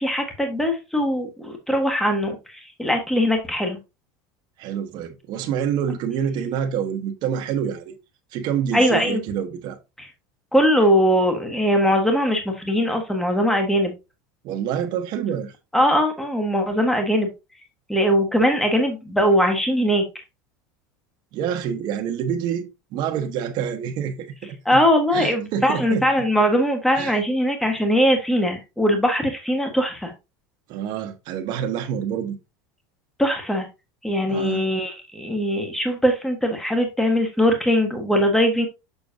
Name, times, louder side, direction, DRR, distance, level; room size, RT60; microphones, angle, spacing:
voice 1, 0.0-3.8 8.7-9.2 10.0-10.1 10.5-13.9 15.7-17.3 17.9-20.0 24.6-30.1 33.2-33.7 34.0-38.7, equal, 5° left, 1.3 m, -21 dB
voice 2, 4.6-7.9 8.3-9.8 14.4-15.5 21.3-24.8 25.1-26.0 26.9-27.1 30.7-32.4 34.3-34.6, right 8 dB, 45° right, 1.1 m, -27 dB
6.9 x 5.9 x 2.6 m
supercardioid pair, 150°, 10 cm